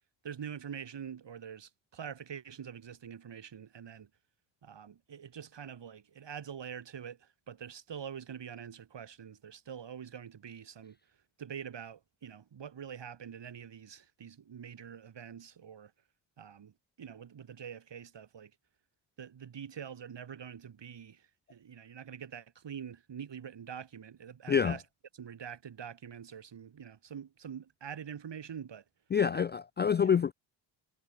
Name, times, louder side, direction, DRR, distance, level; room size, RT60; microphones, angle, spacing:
voice 1, 0.2-4.1 4.6-11.0 11.4-15.9 16.4-18.5 19.2-24.8 25.1-28.8 29.3-29.5 30.0-30.1, right 8 dB, 55° right, 5.3 m, -45 dB
voice 2, 29.1-30.3, left 7 dB, 25° left, 0.3 m, -27 dB
supercardioid pair, 55°, 50 cm